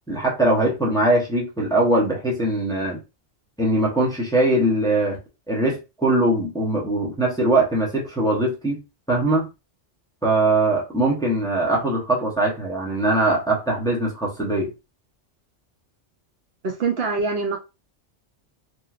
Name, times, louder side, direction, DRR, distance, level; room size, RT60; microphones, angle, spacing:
voice 1, 0.1-3.0 3.6-5.2 5.5-8.8 9.1-9.5 10.2-14.7, right 2 dB, 5° left, 0.7 m, -21 dB
voice 2, 16.6-17.6, right 4 dB, 60° right, 0.8 m, -24 dB
2.9 x 2.7 x 2.4 m
omnidirectional pair, 1.2 m